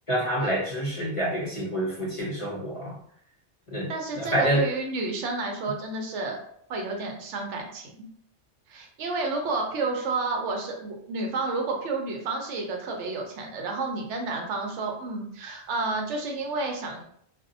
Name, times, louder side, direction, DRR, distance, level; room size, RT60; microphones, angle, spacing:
voice 1, 0.1-3.0 3.7-4.7, right 1 dB, 45° left, -5 dB, 0.4 m, -27 dB
voice 2, 3.9-6.4 6.7-8.1 8.7-17.0, right 3 dB, 75° right, 2 dB, 0.9 m, -30 dB
2.6 x 2.0 x 2.5 m, 0.66 s
omnidirectional pair, 1.2 m